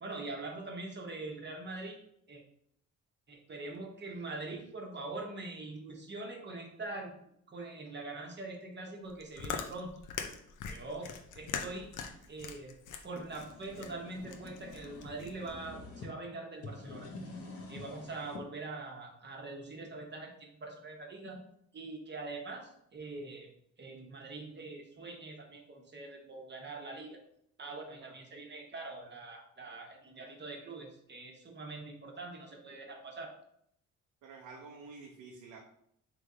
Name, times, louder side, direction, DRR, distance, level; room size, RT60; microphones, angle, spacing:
voice 1, 0.0-2.0 2.3-2.4 3.3-7.2 7.5-10.0 10.7-11.9 12.3-17.1 17.7-21.4 21.7-23.5 23.8-27.2 27.6-33.3, right 2 dB, 35° right, 1 dB, 1.0 m, -43 dB
Chewing mastication, 9.0-15.5, left 7 dB, 85° left, 0.6 m, -42 dB
sound 1, 13.0-16.1 16.5-18.5, left 2 dB, 50° left, 0.8 m, -47 dB
voice 2, 34.2-35.6, right 4 dB, 90° right, 0 dB, 0.7 m, -49 dB
3.5 x 3.3 x 3.8 m, 0.72 s
cardioid pair, 90°, 30 cm